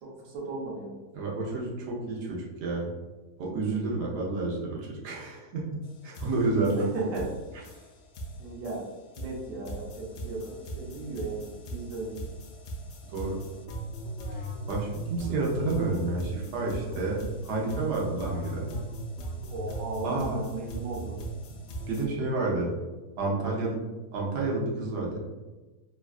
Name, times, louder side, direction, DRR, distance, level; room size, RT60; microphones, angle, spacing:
voice 1, 0.0-0.9 6.8-7.3 8.4-8.9 9.2-12.2 19.5-21.2, right 3 dB, 60° right, -2 dB, 1.0 m, -36 dB
voice 2, 1.1-2.9 3.4-6.9 13.1-13.4 14.7-18.7 20.0-20.4 21.5-21.6 21.9-22.7 23.2-23.8 24.1-25.2, right 3 dB, 90° right, -3 dB, 1.3 m, -30 dB
sound 1, 5.8-5.9 6.1-22.1, right 1 dB, 75° left, 0.6 m, -38 dB
3.4 x 2.2 x 2.3 m, 1.2 s
omnidirectional pair, 1.7 m